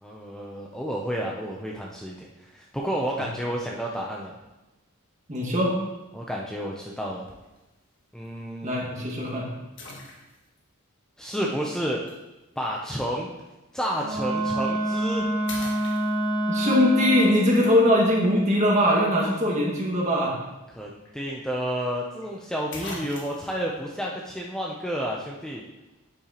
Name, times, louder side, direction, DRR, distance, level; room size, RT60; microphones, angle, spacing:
voice 1, 0.0-4.3 6.1-7.3 8.1-8.8 11.2-12.0 12.6-13.3 13.7-15.3 20.7-25.6, equal, 5° left, -2 dB, 0.5 m, -31 dB
voice 2, 5.3-5.8 8.6-9.5 16.5-20.4, left 1 dB, 30° right, -2 dB, 1.8 m, -21 dB
sound 1, 7.3-7.6 8.2-8.3 9.8-10.6 12.1-12.2 14.3-14.5 15.0-15.1 15.5-16.5 20.7-20.8 21.0-21.1 22.2-22.3 22.7-23.6, left 2 dB, 55° left, 1.6 m, -40 dB
Wind instrument woodwind instrument, 14.0-17.6, right 1 dB, 90° right, 1.9 m, -26 dB
8.7 x 8.5 x 2.9 m, 1.1 s
head